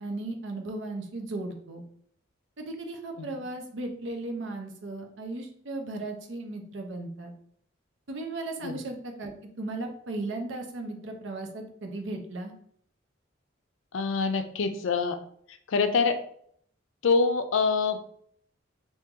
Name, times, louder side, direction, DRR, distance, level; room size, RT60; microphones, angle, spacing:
voice 1, 0.0-1.8 2.6-7.3 8.1-9.3 9.6-12.5, right 2 dB, 70° right, 3 dB, 0.7 m, -36 dB
voice 2, 3.2-3.5 8.6-8.8 13.9-15.2 15.5-16.2 17.0-18.0, left 4 dB, 75° left, 8 dB, 0.4 m, -26 dB
2.9 x 2.7 x 3.6 m, 0.65 s
head